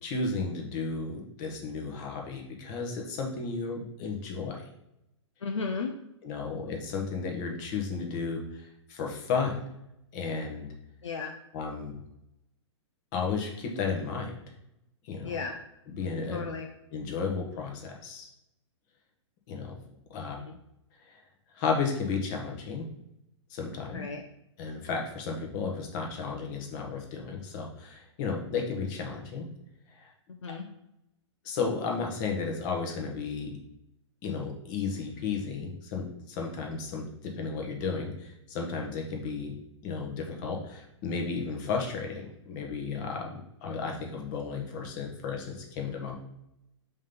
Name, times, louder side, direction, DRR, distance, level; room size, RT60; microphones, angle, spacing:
voice 1, 0.0-4.7 6.2-9.6 10.1-10.7 11.5-12.0 13.1-14.3 15.0-15.4 15.9-16.4 16.9-18.3 19.5-19.8 20.1-20.4 21.0-21.2 21.5-22.9 23.5-24.0 24.6-29.4 29.9-30.1 31.4-33.6 34.2-39.5 39.8-46.2, left 5 dB, 40° left, 0 dB, 1.6 m, -33 dB
voice 2, 5.4-6.0 11.0-11.3 15.2-15.6 16.3-16.7 20.5-20.6 23.9-24.2 30.4-30.7, left 4 dB, 75° left, 3 dB, 0.7 m, -34 dB
5.2 x 4.0 x 5.3 m, 0.83 s
figure-of-eight pair, 115°, 15 cm